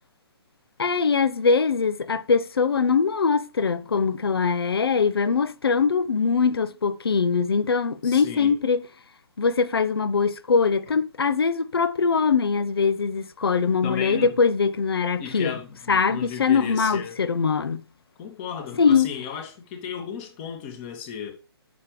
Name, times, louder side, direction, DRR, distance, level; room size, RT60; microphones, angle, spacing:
voice 1, 0.8-8.8 9.4-15.6 15.9-17.8 18.8-19.1, left 5 dB, 65° left, 0.8 m, -22 dB
voice 2, 8.0-8.6 13.8-14.4 15.2-17.2 18.2-21.3, left 7 dB, 30° left, 2.2 m, -35 dB
9.4 x 7.2 x 3.3 m
figure-of-eight pair, 130°, 13 cm